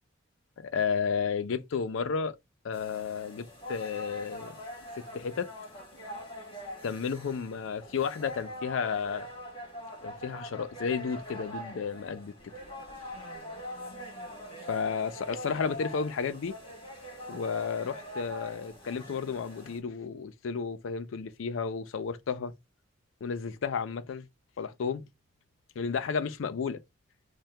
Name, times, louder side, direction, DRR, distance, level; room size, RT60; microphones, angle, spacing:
voice 1, 0.6-2.4 2.6-4.6 5.0-5.5 6.8-9.3 10.0-12.3 14.7-16.6 17.3-22.5 23.2-24.3 24.6-25.0 25.8-26.8, left 6 dB, 70° left, 0.4 m, -32 dB
sound 1, 2.7-19.8, equal, 25° left, 1.2 m, -43 dB
2.8 x 2.2 x 3.2 m
head